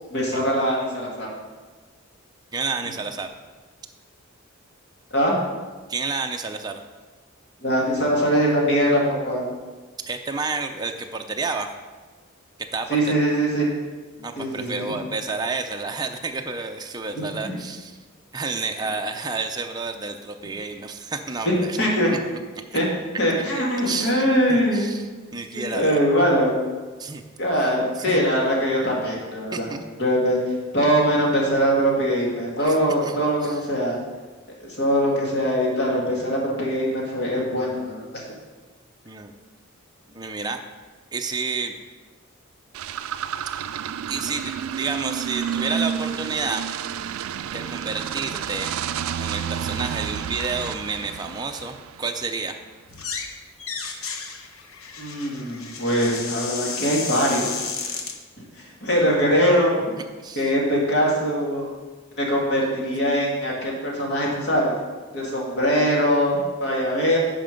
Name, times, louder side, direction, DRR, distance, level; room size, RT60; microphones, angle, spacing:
voice 1, 0.1-1.3 5.1-5.3 7.6-9.5 12.9-13.7 14.4-14.9 17.1-17.5 21.5-22.1 22.7-22.9 23.2-24.9 25.7-26.5 27.4-29.7 30.0-30.4 30.7-34.0 34.6-38.2 55.0-57.6 58.8-59.7 60.4-61.7 62.2-64.8 65.1-67.2, equal, 55° left, -3 dB, 2.2 m, -22 dB
voice 2, 2.5-3.3 5.9-6.8 10.1-11.7 12.7-13.0 14.2-18.0 18.3-21.8 22.1-22.2 22.7-22.8 23.9-26.0 27.0-27.2 27.6-27.7 28.0-28.2 29.5-29.8 32.6-32.8 33.0-33.6 39.0-39.3 40.1-40.6 41.1-41.7 44.1-46.6 47.5-48.7 49.2-52.6 60.2-60.5, right 4 dB, 20° right, 4 dB, 0.5 m, -30 dB
sound 1, 42.7-52.3, right 8 dB, 80° right, 0.3 m, -30 dB
sound 2, 52.9-53.3 53.6-58.2, left 5 dB, 90° left, 0.9 m, -32 dB
9.1 x 5.1 x 5.2 m, 1.3 s
head